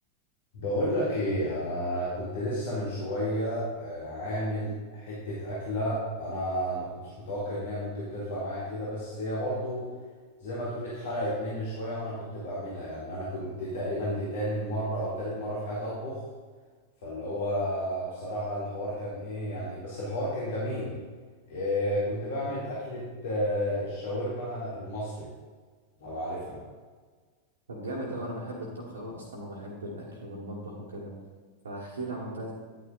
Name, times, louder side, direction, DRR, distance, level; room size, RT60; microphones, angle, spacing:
voice 1, 0.5-9.9 10.4-16.2 17.0-21.0 21.5-25.3 26.0-26.6, equal, 60° left, -8 dB, 2.2 m, -32 dB
voice 2, 27.7-31.1 31.6-32.5, right 1 dB, 70° right, -3 dB, 1.4 m, -37 dB
9.7 x 9.1 x 2.4 m, 1.5 s
figure-of-eight pair, 90°, 0 cm